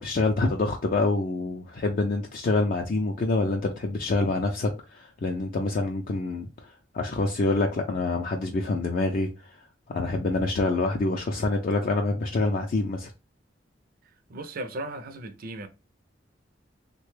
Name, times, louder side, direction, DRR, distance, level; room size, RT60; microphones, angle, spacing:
voice 1, 0.0-9.5 9.9-13.1, left 2 dB, 50° left, 0.4 m, -26 dB
voice 2, 14.3-15.7, right 2 dB, 55° right, 0.5 m, -36 dB
3.3 x 2.2 x 3.1 m
head